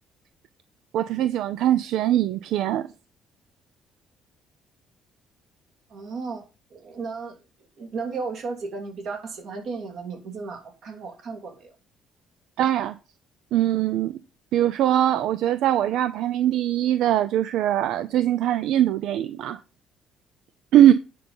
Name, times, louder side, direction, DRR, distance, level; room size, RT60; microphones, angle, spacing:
voice 1, 0.9-2.9 12.6-12.9 13.5-14.1 14.5-19.6 20.7-20.9, right 12 dB, 75° right, 0.5 m, -21 dB
voice 2, 5.9-7.4 7.8-11.8 15.8-16.0, right 4 dB, 55° right, 2.8 m, -34 dB
9.3 x 5.5 x 5.4 m
cardioid pair, 145°, 0 cm